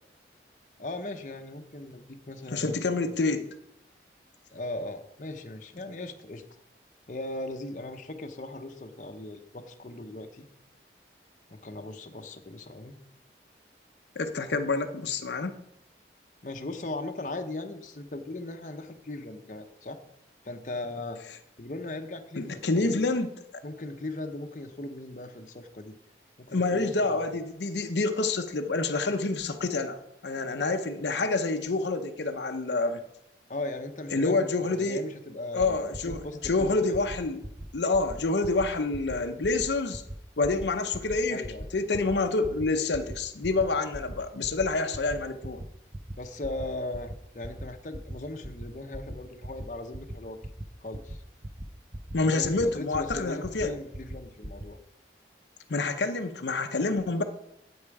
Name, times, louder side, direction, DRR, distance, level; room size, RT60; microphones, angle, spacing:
voice 1, 0.8-2.8 4.5-6.4 7.1-10.5 11.5-13.0 16.4-20.0 20.4-21.2 21.6-23.1 23.6-26.0 26.4-27.2 33.5-37.0 41.3-41.7 46.2-50.4 50.8-51.2 52.2-54.8, left 2 dB, 45° left, 5 dB, 0.8 m, -38 dB
voice 2, 2.5-3.5 14.2-15.6 22.4-23.6 26.5-30.0 30.2-33.0 34.1-35.0 35.5-37.4 37.7-40.0 40.4-41.4 41.7-45.7 52.1-53.7 55.7-57.2, left 3 dB, 75° left, 6 dB, 0.7 m, -27 dB
sound 1, 35.6-35.7 35.9-36.2 36.4-36.7 36.9-37.2 37.4-37.7 37.9-38.2 38.4-38.7 38.9-39.2 39.4-39.7 39.9-40.2 40.4-40.7 40.9-41.2 41.4-41.7 41.9-42.2 42.4-42.7 42.9-43.2 43.4-43.7 43.9-44.2 44.4-44.7 44.9-45.2 45.4-45.7 45.9-46.2 46.4-46.6 46.9-47.1 47.4-47.7 47.9-48.2 48.4-48.7 48.9-49.2 49.4-49.7 49.9-50.1 50.4-50.6 50.9-51.2 51.4-51.7 51.9-52.2 52.4-52.7 52.9-53.2 53.4-53.7 53.9-54.2 54.4-54.6, right 1 dB, 20° right, 0.6 m, -38 dB
8.8 x 8.7 x 4.7 m, 0.80 s
head